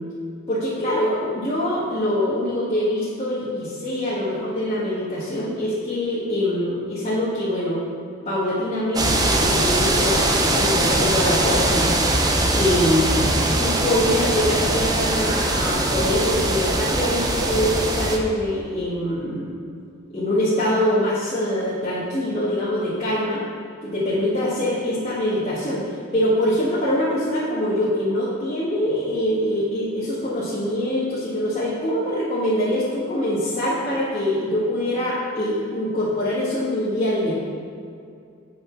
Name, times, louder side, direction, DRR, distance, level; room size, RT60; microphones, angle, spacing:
voice 1, 0.5-7.8 8.2-12.3 12.5-13.3 13.6-19.5 20.1-23.4 23.8-25.8 26.1-37.4, left 1 dB, 30° left, -11 dB, 1.6 m, -24 dB
sound 1, 9.0-18.2, right 1 dB, 20° right, 0.7 m, -21 dB
8.5 x 5.2 x 5.9 m, 2.4 s
head